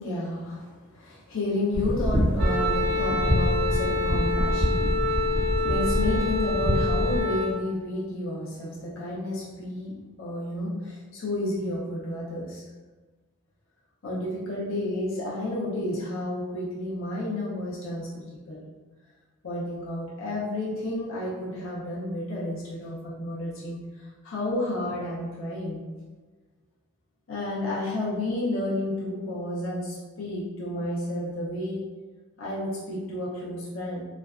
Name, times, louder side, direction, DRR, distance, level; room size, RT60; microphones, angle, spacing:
voice 1, 0.0-12.6 14.0-18.6 19.4-25.8 27.3-31.8 32.4-34.0, left 1 dB, 70° left, -7 dB, 0.6 m, -31 dB
sound 1, 1.7-7.2, equal, 10° left, 0.7 m, -26 dB
Wind instrument woodwind instrument, 2.4-7.5, left 3 dB, 50° right, 0.4 m, -27 dB
2.4 x 2.1 x 2.3 m, 1.3 s
head